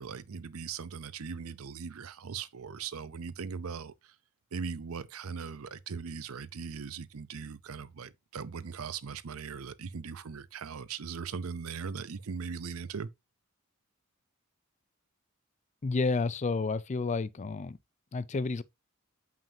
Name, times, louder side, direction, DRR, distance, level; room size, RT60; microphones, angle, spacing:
voice 1, 0.0-4.2 4.5-13.1, right 6 dB, 70° right, 0.6 m, -39 dB
voice 2, 15.8-17.8 18.1-18.6, left 3 dB, 30° left, 0.4 m, -30 dB
7.2 x 5.6 x 2.7 m
head